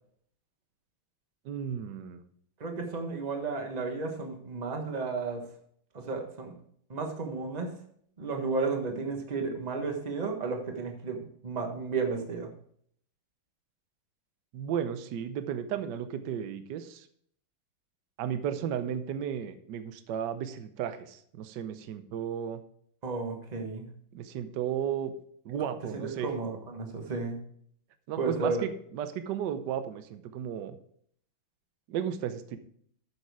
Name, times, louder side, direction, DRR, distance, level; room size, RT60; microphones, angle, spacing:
voice 1, 1.4-2.2 14.5-17.1 18.2-22.6 24.1-25.1 25.4-26.3 28.1-30.8 31.9-32.6, right 9 dB, 65° right, 10 dB, 1.3 m, -34 dB
voice 2, 2.6-5.4 5.9-6.6 6.9-7.7 8.2-12.5 23.0-23.9 25.9-27.4 28.2-28.6, right 4 dB, 25° right, 3 dB, 1.1 m, -33 dB
8.3 x 7.1 x 4.7 m, 0.63 s
omnidirectional pair, 2.3 m